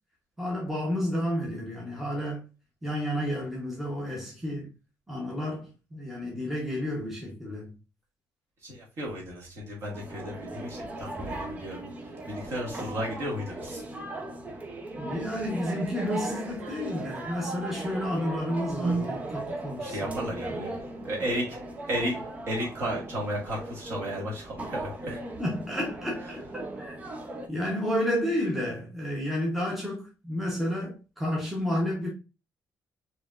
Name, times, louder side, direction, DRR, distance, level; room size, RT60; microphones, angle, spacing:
voice 1, 0.4-2.4 2.8-4.7 5.1-7.7 15.0-20.6 25.4-27.0 27.5-32.1, equal, 5° right, 0.9 m, -31 dB
voice 2, 8.6-11.8 12.3-13.8 19.8-20.7 21.0-21.6 21.9-22.2 22.5-25.2, equal, 45° right, 1.8 m, -33 dB
sound 1, 9.9-27.5, right 2 dB, 20° right, 0.6 m, -37 dB
4.8 x 2.9 x 2.4 m
cardioid pair, 175°, 7 cm